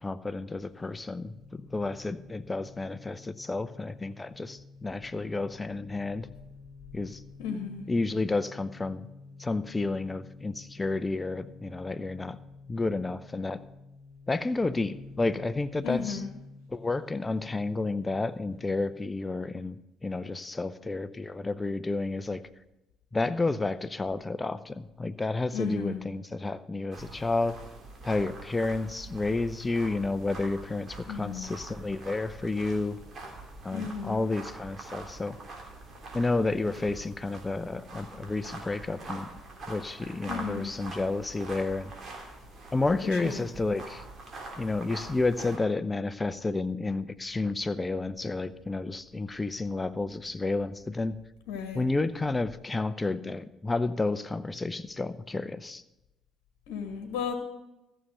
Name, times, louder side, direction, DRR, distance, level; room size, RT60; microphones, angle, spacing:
voice 1, 0.0-6.3 6.9-7.2 7.9-9.1 9.4-12.4 12.7-13.6 14.3-16.2 16.7-22.4 23.1-27.6 28.0-33.0 33.6-35.4 36.1-39.3 39.7-41.9 42.7-44.0 44.6-51.2 51.7-55.8, left 3 dB, 20° left, 13 dB, 0.7 m, -31 dB
sound 1, 0.7-18.9, left 3 dB, 70° right, 4.5 m, -51 dB
voice 2, 7.4-7.8 15.8-16.3 25.5-26.0 31.1-31.5 33.7-34.2 40.3-40.7 43.0-43.5 51.5-51.8 56.7-57.3, left 6 dB, 75° left, 6 dB, 1.2 m, -34 dB
sound 2, 26.9-45.6, right 2 dB, 45° right, 3.3 m, -44 dB
14.0 x 6.9 x 6.4 m, 0.95 s
hypercardioid pair, 50°, 0 cm